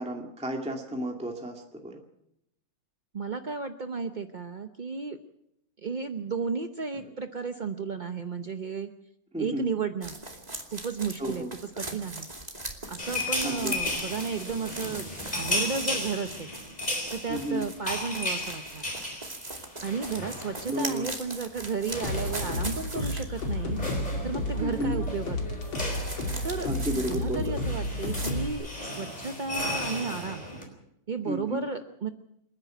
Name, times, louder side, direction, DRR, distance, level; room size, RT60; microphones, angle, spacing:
voice 1, 0.0-2.0 9.3-9.7 11.2-11.5 13.4-13.7 17.3-17.6 20.7-21.0 24.6-25.1 26.6-27.6 31.3-31.6, equal, 5° right, 1 dB, 2.1 m, -32 dB
voice 2, 3.1-5.2 5.8-8.9 9.4-10.2 10.7-12.3 12.9-16.5 17.1-18.8 19.8-23.8 24.2-25.4 26.4-26.7 26.9-30.5 31.1-32.1, right 5 dB, 45° right, 7 dB, 0.6 m, -33 dB
sound 1, 10.0-23.5 23.9-24.0 25.7-27.6 28.0-28.3, right 2 dB, 20° right, 2.6 m, -40 dB
sound 2, 13.0-20.9 21.1-21.3 21.6-30.6, left 1 dB, 20° left, 4.9 m, -35 dB
sound 3, 22.0-28.5, left 2 dB, 90° left, 3.6 m, -32 dB
27.5 x 10.5 x 9.1 m, 0.78 s
omnidirectional pair, 2.1 m